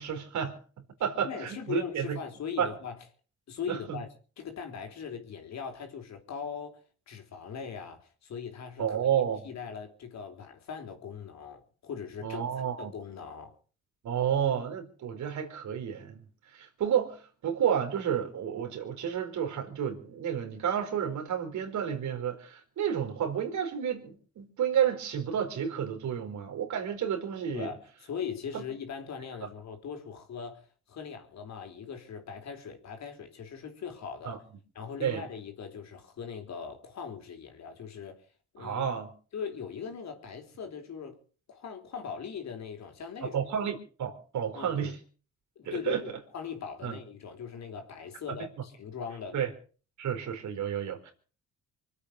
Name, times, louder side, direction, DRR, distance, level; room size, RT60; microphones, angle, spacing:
voice 1, 0.0-2.2 2.6-2.7 3.7-4.0 8.8-9.4 12.2-12.9 14.0-16.2 16.5-27.7 28.5-28.6 29.4-29.5 34.2-34.4 35.0-35.3 38.6-39.1 43.2-45.0 45.7-46.1 46.8-47.0 48.3-48.4 49.3-49.5 50.0-51.1, right 8 dB, 75° right, 4.6 m, -31 dB
voice 2, 1.2-3.0 3.5-4.1 4.4-12.4 12.8-13.6 27.5-34.4 34.7-38.2 38.5-38.9 39.3-41.2 41.5-43.4 44.5-44.9 45.6-49.5, left 6 dB, 65° left, 4.3 m, -40 dB
25.5 x 8.7 x 6.6 m
cardioid pair, 90°, 30 cm